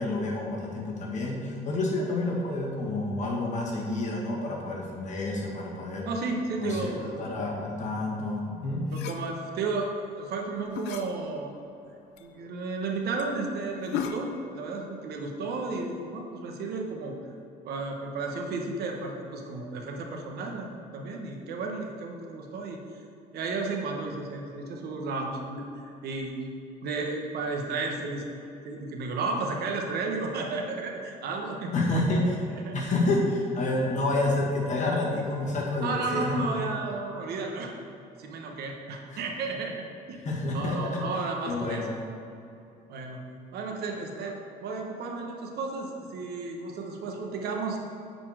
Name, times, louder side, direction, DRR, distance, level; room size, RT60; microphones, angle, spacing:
voice 1, 0.0-6.1 6.6-8.8 31.7-32.4 32.7-36.5 39.1-39.2 40.2-41.0 41.5-41.9, left 2 dB, 45° left, -3 dB, 1.8 m, -29 dB
voice 2, 6.1-7.3 8.9-11.5 12.2-17.2 17.6-22.8 23.3-26.4 26.8-28.3 28.6-31.7 32.5-32.8 33.6-33.7 35.8-37.7 38.2-40.2 40.5-41.9 42.9-43.2 43.5-47.8, right 3 dB, 70° right, 1 dB, 1.1 m, -33 dB
sound 1, 8.8-9.3 10.6-11.1 11.7-11.8 12.2-12.3 12.6-12.7 13.2-13.4 13.8-14.4, left 7 dB, 85° left, 0.5 m, -35 dB
9.0 x 4.4 x 4.9 m, 2.7 s
cardioid pair, 110°, 17 cm